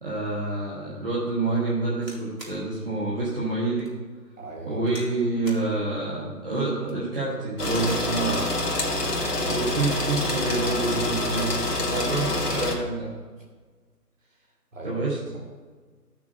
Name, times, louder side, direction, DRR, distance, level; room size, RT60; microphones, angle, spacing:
voice 1, 0.0-3.9 4.6-8.6 9.4-13.2 14.8-15.2, right 3 dB, 35° right, -7 dB, 1.3 m, -28 dB
sound 1, 2.0-2.6 3.2-3.3 3.8-4.0 4.9-5.2 5.4-5.7 6.7-7.1 7.7-8.1 9.3-9.8 10.9-11.6 12.0-12.1 12.3-12.8 13.7-13.9, right 1 dB, 90° right, 2.9 m, -46 dB
voice 2, 4.4-4.8 9.0-9.6 11.9-12.1 14.7-15.0, right 3 dB, 50° right, -1 dB, 2.2 m, -39 dB
sound 2, 7.6-12.8, left 2 dB, 70° left, 1.7 m, -26 dB
11.5 x 6.0 x 4.2 m, 1.4 s
figure-of-eight pair, 160°, 48 cm